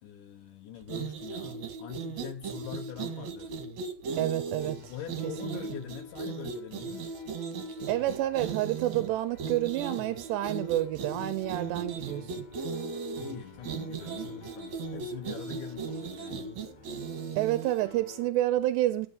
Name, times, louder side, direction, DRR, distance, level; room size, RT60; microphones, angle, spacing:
voice 1, 0.0-3.5 4.9-7.2 13.2-16.6, left 10 dB, 75° left, 2.0 m, -44 dB
sound 1, 0.8-17.9, right 4 dB, 55° right, 2.4 m, -37 dB
voice 2, 4.2-4.9 5.4-5.6 7.9-12.5 17.4-19.1, right 14 dB, 90° right, 2.9 m, -29 dB
Piano, 4.6-18.3, left 3 dB, 60° left, 2.1 m, -53 dB
13.5 x 8.6 x 5.2 m
omnidirectional pair, 4.8 m